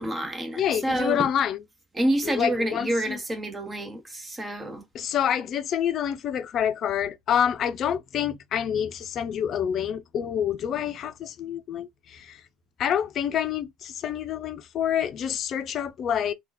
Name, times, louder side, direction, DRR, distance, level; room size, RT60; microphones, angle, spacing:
voice 1, 0.0-1.3 2.0-4.8, right 1 dB, 15° right, 1.0 m, -28 dB
voice 2, 0.6-1.6 2.2-3.2 4.9-12.4 12.8-16.3, left 9 dB, 45° left, 0.6 m, -27 dB
2.9 x 2.4 x 3.9 m
supercardioid pair, 90°, 0 cm